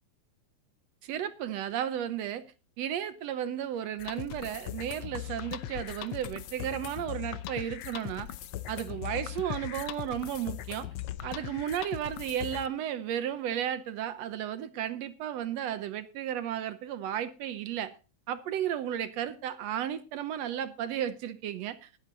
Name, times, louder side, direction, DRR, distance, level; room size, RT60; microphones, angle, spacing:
voice 1, 1.0-2.4 2.8-8.3 8.7-10.9 11.2-17.9 18.3-21.9, right 10 dB, 70° right, 1.9 m, -34 dB
sound 1, 4.0-12.7, left 12 dB, 75° left, 1.3 m, -39 dB
19.0 x 7.9 x 4.0 m
omnidirectional pair, 3.3 m